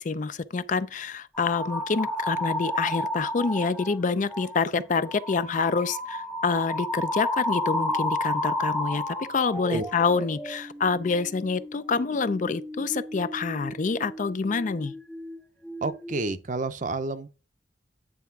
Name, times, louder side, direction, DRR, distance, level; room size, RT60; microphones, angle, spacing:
voice 1, 0.0-15.0, left 4 dB, 45° left, 0.4 m, -27 dB
sound 1, 1.4-4.0 4.3-4.6 5.1-15.4 15.6-16.3, left 1 dB, ahead, 0.7 m, -32 dB
voice 2, 15.8-17.3, right 3 dB, 45° right, 0.6 m, -30 dB
9.4 x 3.4 x 5.8 m
head